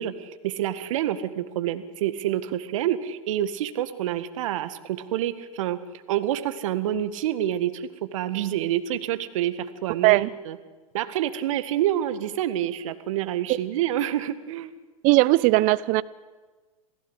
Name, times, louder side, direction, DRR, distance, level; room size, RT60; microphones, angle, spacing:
voice 1, 0.0-5.8 6.1-10.6 10.9-14.7, right 12 dB, 65° right, 12 dB, 1.9 m, -27 dB
voice 2, 15.0-16.0, right 20 dB, 45° right, 18 dB, 0.9 m, -18 dB
28.0 x 16.5 x 8.2 m, 1.3 s
hypercardioid pair, 95°, 18 cm